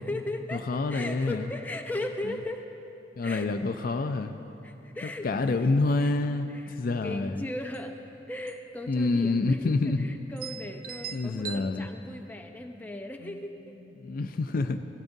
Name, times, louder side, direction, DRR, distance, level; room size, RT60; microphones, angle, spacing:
voice 1, 0.0-2.7 3.2-3.5 4.6-5.7 6.0-6.1 6.5-6.8 7.0-8.0 8.3-13.7 14.6-14.8, left 1 dB, 10° left, 3 dB, 0.6 m, -37 dB
voice 2, 0.5-1.5 3.2-4.3 5.0-7.4 8.9-10.1 11.1-11.9 13.2-13.4 14.0-14.8, left 3 dB, 50° left, 8 dB, 0.4 m, -27 dB
sound 1, 3.4-3.5 3.7-3.8 4.2-4.6 5.1-5.3 5.7-6.3 7.4-7.5 7.7-7.9 8.5-8.8 9.0-9.1 9.8-9.9 10.4-11.6, right 9 dB, 55° right, 0.4 m, -41 dB
16.5 x 14.5 x 2.7 m, 2.9 s
head